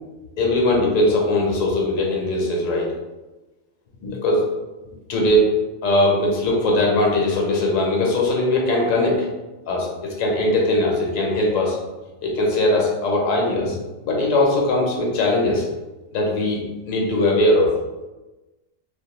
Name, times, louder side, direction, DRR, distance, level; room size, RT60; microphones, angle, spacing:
voice 1, 0.4-2.9 4.0-4.4 5.1-5.5 5.8-9.3 9.7-11.8 12.2-13.8 14.0-15.6 16.1-16.6 16.9-17.7, left 1 dB, 85° left, -1 dB, 1.1 m, -20 dB
2.5 x 2.1 x 2.9 m, 1.1 s
omnidirectional pair, 1.3 m